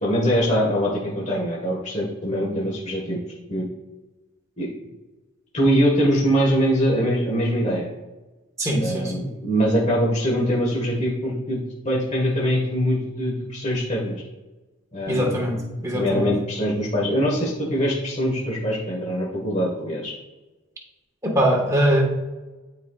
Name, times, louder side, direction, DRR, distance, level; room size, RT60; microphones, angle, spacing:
voice 1, 0.0-3.2 3.5-3.7 4.6-4.7 5.5-7.9 8.8-14.2 14.9-15.5 15.9-20.1, equal, 35° left, -5 dB, 1.5 m, -23 dB
voice 2, 8.6-9.3 15.1-16.3 21.2-22.0, equal, 15° right, -1 dB, 1.4 m, -22 dB
11.5 x 4.4 x 2.4 m, 1.1 s
head